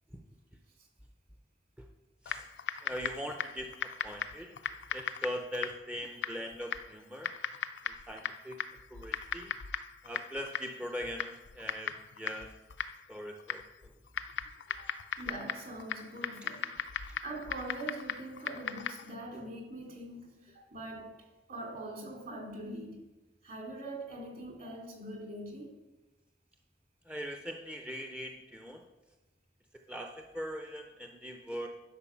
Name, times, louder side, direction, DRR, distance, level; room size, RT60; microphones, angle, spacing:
Typing, 2.3-19.1, left 7 dB, 75° left, 0.5 m, -39 dB
voice 1, 2.8-4.5 4.9-7.3 7.9-8.6 8.9-9.5 10.0-12.5 13.1-13.9 17.1-17.2 27.1-28.8 29.9-31.7, equal, 5° right, 3 dB, 0.5 m, -41 dB
voice 2, 15.2-16.7 17.2-23.1 23.4-25.8, right 1 dB, 55° right, 0 dB, 2.8 m, -43 dB
11.0 x 5.3 x 5.7 m, 1.1 s
head